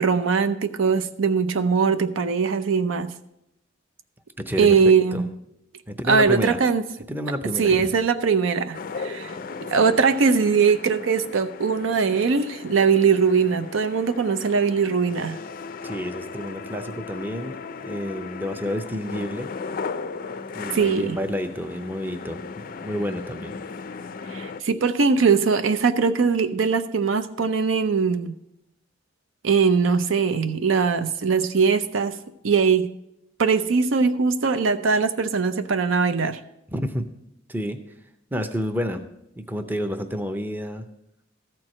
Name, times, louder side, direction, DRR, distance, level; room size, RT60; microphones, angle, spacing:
voice 1, 0.0-3.1 4.6-5.3 6.1-6.8 7.6-9.3 9.7-15.4 20.7-21.2 24.3-28.4 29.4-32.1 32.4-32.9 33.4-36.4, right 5 dB, 75° right, 11 dB, 0.6 m, -21 dB
voice 2, 4.4-4.7 5.1-5.2 5.9-6.6 7.1-8.0 15.8-19.5 20.5-23.6 36.7-37.0 37.5-37.8 38.3-39.1 39.4-40.8, equal, 10° right, 7 dB, 0.6 m, -29 dB
sound 1, 8.7-24.6, left 4 dB, 45° left, 0.4 m, -36 dB
13.5 x 4.6 x 6.3 m, 0.81 s
head